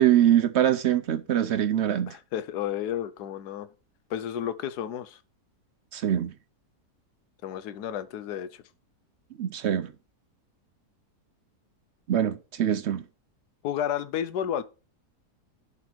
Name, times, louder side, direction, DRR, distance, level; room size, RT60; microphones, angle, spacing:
voice 1, 0.0-2.2 5.9-6.3 9.4-9.9 12.1-13.0, right 11 dB, 65° right, 0.7 m, -23 dB
voice 2, 2.1-3.7 4.1-5.2 7.4-8.6 13.6-14.6, left 10 dB, 80° left, 1.3 m, -32 dB
11.0 x 4.3 x 4.3 m
omnidirectional pair, 1.7 m